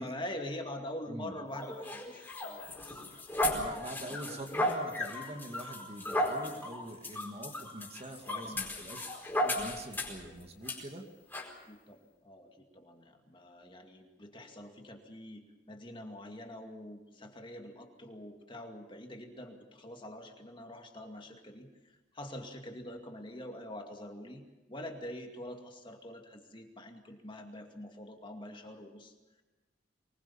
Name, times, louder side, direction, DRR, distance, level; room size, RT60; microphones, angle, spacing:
voice 1, 0.0-3.0 4.2-4.8 8.2-8.8 9.4-9.5 11.6-24.4 24.7-29.4, left 1 dB, 25° left, 3 dB, 2.3 m, -45 dB
sound 1, 1.5-10.2 10.7-10.8 11.3-11.5, left 1 dB, 10° left, 4.7 m, -35 dB
voice 2, 3.5-9.1 9.5-11.0, right 1 dB, 35° right, 4 dB, 2.3 m, -44 dB
24.0 x 21.0 x 7.2 m, 1.1 s
head